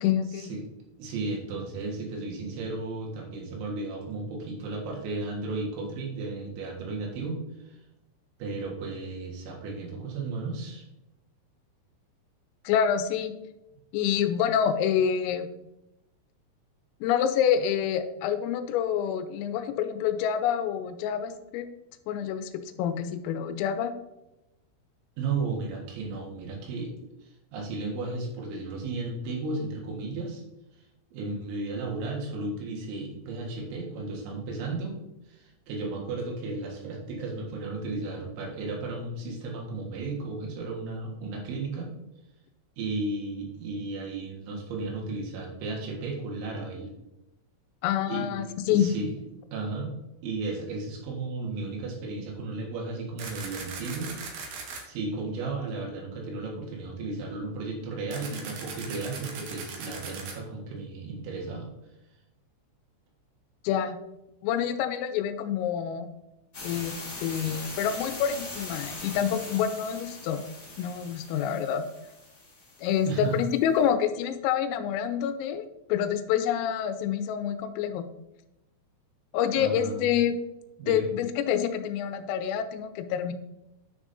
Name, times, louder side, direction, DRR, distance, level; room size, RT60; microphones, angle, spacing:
voice 1, 0.0-0.5 12.6-13.3 13.9-15.5 17.0-21.7 22.1-22.5 22.8-23.9 47.8-48.9 63.6-64.0 64.4-66.1 66.6-70.4 70.8-71.9 72.8-78.1 79.3-80.4 80.9-83.3, left 9 dB, 85° left, 9 dB, 3.3 m, -27 dB
voice 2, 1.0-7.8 8.4-10.8 25.2-26.9 27.2-30.4 31.1-34.9 35.3-41.9 42.8-46.9 48.1-48.3 48.7-49.1 49.5-49.9 50.2-54.2 54.9-61.7 73.1-73.4 79.6-80.1 80.8-81.1, right 3 dB, 70° right, -1 dB, 3.7 m, -34 dB
sound 1, 53.2-54.8 58.1-60.3, right 5 dB, 90° right, 1.9 m, -39 dB
sound 2, 66.5-73.4, left 2 dB, 30° left, 1.7 m, -41 dB
10.0 x 6.2 x 2.7 m, 0.91 s
omnidirectional pair, 5.9 m